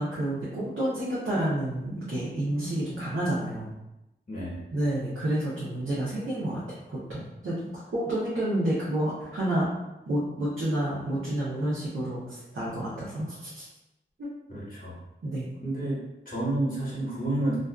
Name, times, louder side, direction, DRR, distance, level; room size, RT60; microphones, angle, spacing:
voice 1, 0.0-3.7 4.7-6.6 6.9-9.7 10.1-13.7 14.2-14.3 15.2-15.5, right 1 dB, 90° right, -9 dB, 0.7 m, -29 dB
voice 2, 4.3-4.6 14.5-15.0 15.6-16.0 16.3-17.6, right 1 dB, 45° left, -8 dB, 1.1 m, -30 dB
2.5 x 2.3 x 2.3 m, 0.92 s
wide cardioid pair, 55°, 20 cm